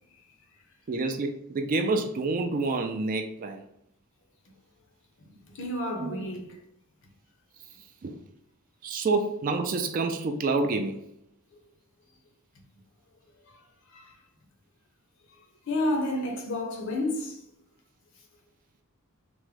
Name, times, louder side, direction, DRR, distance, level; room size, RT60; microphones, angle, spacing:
voice 1, 0.9-3.6 6.0-6.3 8.0-8.2 8.8-11.0, right 3 dB, 40° right, 0.3 m, -28 dB
voice 2, 5.5-6.5 13.9-14.1 15.7-17.4, left 1 dB, 55° left, 0.6 m, -30 dB
3.4 x 2.1 x 3.2 m
head